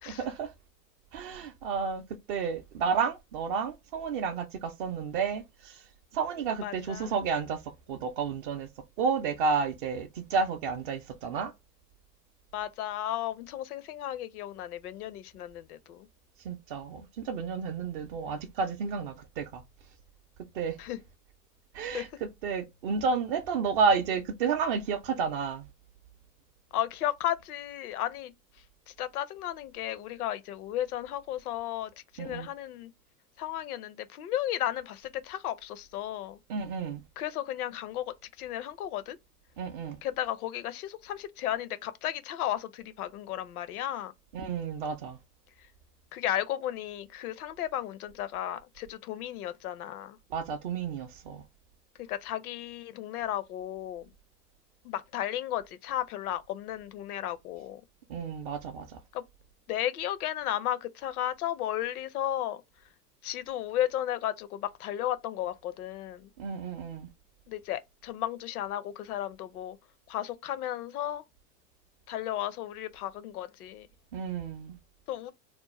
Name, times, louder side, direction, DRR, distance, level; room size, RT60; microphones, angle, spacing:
voice 1, 0.1-0.5 1.1-2.0 2.3-5.8 6.1-8.7 9.0-11.5 16.4-19.6 20.5-20.8 21.7-25.7 32.2-32.5 36.5-37.0 39.6-40.0 44.3-45.2 50.3-51.4 58.1-59.0 66.4-67.1 74.1-74.8, right 5 dB, 35° right, 0.4 m, -31 dB
voice 2, 6.6-7.1 12.5-16.1 20.8-21.0 21.9-22.0 26.7-28.3 28.9-32.9 33.4-36.4 37.2-39.2 40.0-44.1 46.1-50.2 52.0-54.1 54.8-57.8 59.1-59.2 59.7-62.6 63.2-66.3 67.5-69.8 70.1-71.2 72.1-73.9 75.1-75.3, left 12 dB, 65° left, 0.6 m, -34 dB
2.4 x 2.1 x 3.0 m
hypercardioid pair, 100°, 49 cm